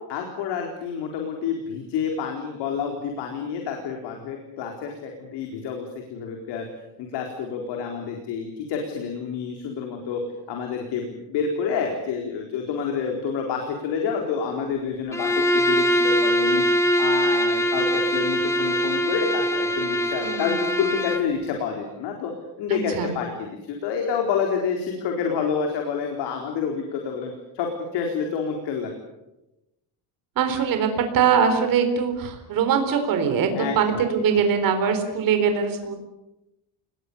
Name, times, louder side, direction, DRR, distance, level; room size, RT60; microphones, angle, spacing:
voice 1, 0.1-6.7 7.0-10.2 10.5-16.6 17.0-22.3 22.6-28.9 33.5-34.0, left 6 dB, 75° left, 2 dB, 4.3 m, -28 dB
Bowed string instrument, 15.1-21.3, equal, 5° left, 1.6 m, -22 dB
voice 2, 20.2-20.6 22.7-23.1 30.4-36.0, right 6 dB, 50° right, 7 dB, 4.1 m, -22 dB
30.0 x 20.5 x 7.0 m, 0.93 s
cardioid pair, 170°, 42 cm